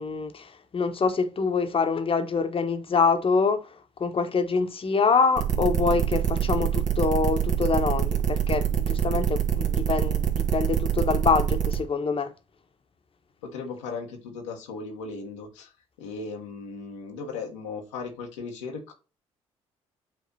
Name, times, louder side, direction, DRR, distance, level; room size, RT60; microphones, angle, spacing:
voice 1, 0.0-3.7 4.0-12.3, left 5 dB, 35° left, 1.3 m, -25 dB
sound 1, 5.4-11.8, right 9 dB, 55° right, 1.8 m, -25 dB
voice 2, 13.4-15.7 16.0-18.9, left 4 dB, 80° left, 1.4 m, -37 dB
8.8 x 3.5 x 4.1 m
hypercardioid pair, 45°, 15 cm